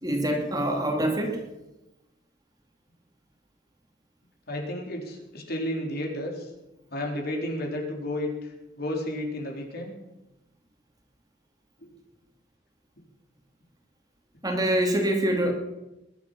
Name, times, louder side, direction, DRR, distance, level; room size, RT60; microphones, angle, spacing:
voice 1, 0.0-1.4 14.4-15.5, right 1 dB, 20° right, 2 dB, 2.5 m, -25 dB
voice 2, 4.5-6.5 6.9-10.0 11.8-11.9, left 1 dB, 55° left, 1 dB, 4.1 m, -32 dB
21.0 x 11.5 x 5.8 m, 0.97 s
head